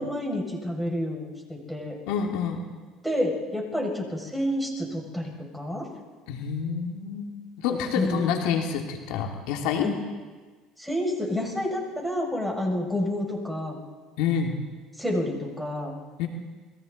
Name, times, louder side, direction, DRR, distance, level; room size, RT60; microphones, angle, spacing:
voice 1, 0.0-2.0 3.0-5.9 7.9-8.3 9.8-9.9 10.8-13.8 15.0-16.0, left 1 dB, ahead, -1 dB, 6.9 m, -29 dB
voice 2, 2.1-2.6 6.3-7.3 7.6-9.9 14.2-14.6 16.2-16.3, left 7 dB, 75° left, 2 dB, 2.6 m, -27 dB
29.0 x 22.0 x 4.2 m, 1.4 s
hypercardioid pair, 80°, 0 cm